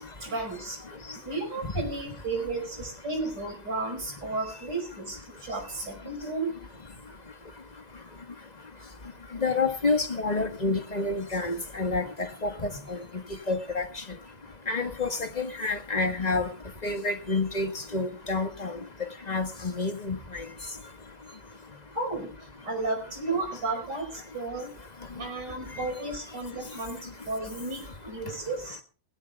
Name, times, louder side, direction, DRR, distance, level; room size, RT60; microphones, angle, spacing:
voice 1, 0.2-0.8 1.2-6.5 21.9-22.4 22.6-24.7 25.2-27.0 27.3-28.8, right 3 dB, 55° right, 5.7 m, -33 dB
voice 2, 9.4-13.0 13.5-13.8 14.7-16.5 16.8-18.7 19.3-20.4, left 3 dB, 25° left, 1.4 m, -28 dB
20.0 x 16.5 x 2.4 m
omnidirectional pair, 2.2 m